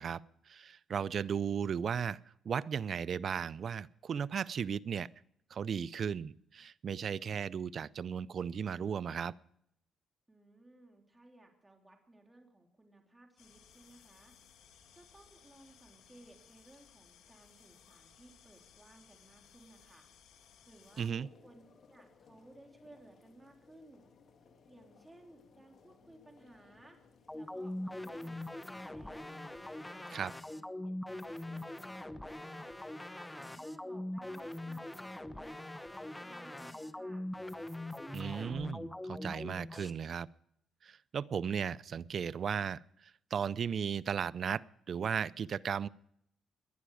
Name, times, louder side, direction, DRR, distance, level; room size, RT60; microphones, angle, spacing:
voice 1, 0.0-2.2 2.4-5.1 5.5-9.3 21.0-21.3 30.1-30.3 38.1-40.3 40.8-45.9, right 7 dB, 55° right, 0.5 m, -36 dB
voice 2, 10.3-14.3 14.9-20.1 20.6-24.1 24.7-27.0 27.3-29.3 29.9-32.7 33.1-37.3, right 1 dB, 15° right, 3.5 m, -59 dB
sound 1, 13.4-21.1, left 8 dB, 80° left, 2.1 m, -61 dB
sound 2, 20.9-30.0, left 5 dB, 55° left, 2.0 m, -62 dB
sound 3, 27.3-39.9, left 1 dB, 10° left, 0.9 m, -42 dB
19.0 x 11.0 x 4.9 m
cardioid pair, 90°, 0 cm